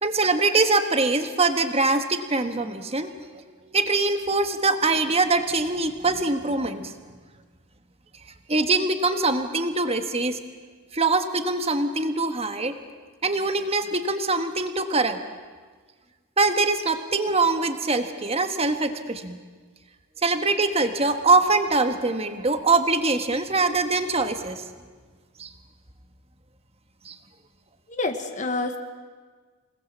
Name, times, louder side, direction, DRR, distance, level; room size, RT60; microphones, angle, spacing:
voice 1, 0.0-3.1 3.7-6.9 8.5-10.4 10.9-12.8 13.2-15.2 16.4-19.4 20.2-24.6 25.4-25.5 27.0-27.2, right 3 dB, 25° right, 7 dB, 1.3 m, -23 dB
voice 2, 27.9-28.8, left 2 dB, 35° left, 6 dB, 1.2 m, -27 dB
28.0 x 19.0 x 7.3 m, 1.5 s
head